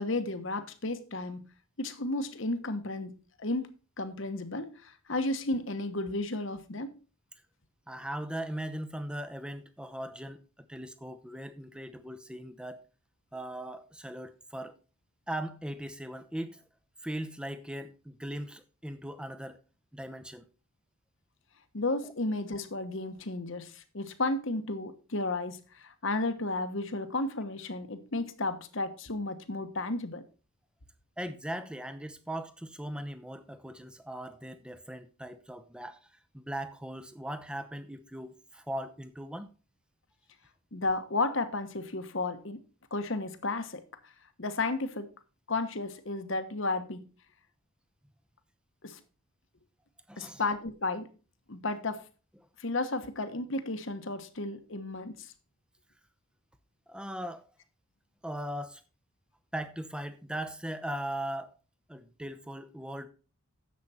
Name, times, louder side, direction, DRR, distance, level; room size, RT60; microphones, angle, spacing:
voice 1, 0.0-1.4 1.8-3.7 4.0-6.9 21.7-30.2 40.7-42.6 42.9-44.1 44.4-45.1 45.5-47.0 48.8-49.0 50.2-51.1 51.5-52.0 52.6-55.3, left 2 dB, 60° left, 1.2 m, -33 dB
voice 2, 7.9-10.4 10.7-12.8 13.3-14.7 15.3-16.6 17.0-19.6 19.9-20.4 31.2-36.0 36.3-39.5 50.1-50.4 56.9-57.4 58.2-58.8 59.5-61.5 61.9-63.1, right 1 dB, 5° right, 0.7 m, -39 dB
10.5 x 7.6 x 4.3 m
head